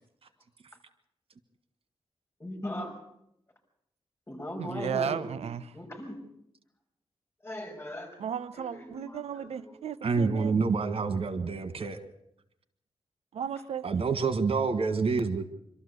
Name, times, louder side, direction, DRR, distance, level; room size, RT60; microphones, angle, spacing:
voice 1, 2.4-3.0 4.3-5.3 5.7-6.2 7.4-8.3 8.6-9.7, left 1 dB, 25° left, 2 dB, 6.2 m, -39 dB
voice 2, 4.6-5.6 8.2-10.7 13.3-14.0, right 8 dB, 90° right, 15 dB, 0.8 m, -35 dB
voice 3, 10.0-12.0 13.8-15.4, right 4 dB, 65° right, 10 dB, 1.7 m, -27 dB
25.5 x 13.0 x 8.3 m, 0.79 s
cardioid pair, 80°, 10 cm